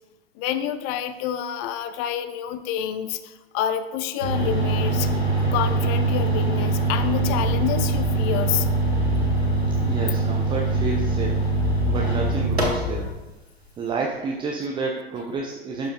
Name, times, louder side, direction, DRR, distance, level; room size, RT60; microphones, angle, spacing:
voice 1, 0.4-5.1 5.5-8.7, left 9 dB, 30° left, 12 dB, 0.3 m, -28 dB
sound 1, 4.2-13.1, right 2 dB, 90° right, 1.4 m, -23 dB
voice 2, 9.8-11.5 11.9-13.1 13.8-15.9, right 4 dB, 15° right, -1 dB, 0.6 m, -29 dB
12.0 x 5.1 x 2.5 m, 1.1 s
figure-of-eight pair, 90°, 31 cm